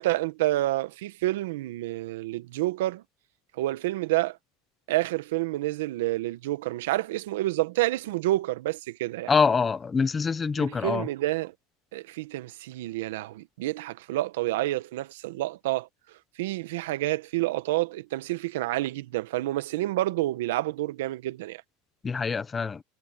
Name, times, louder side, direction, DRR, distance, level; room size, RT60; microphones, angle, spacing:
voice 1, 0.0-3.0 3.6-4.4 4.9-9.3 10.6-11.5 11.9-15.9 16.4-21.6, right 16 dB, 80° right, 1.2 m, -29 dB
voice 2, 9.3-11.1 22.0-22.8, left 5 dB, 15° left, 1.0 m, -25 dB
supercardioid pair, 155°, 0 cm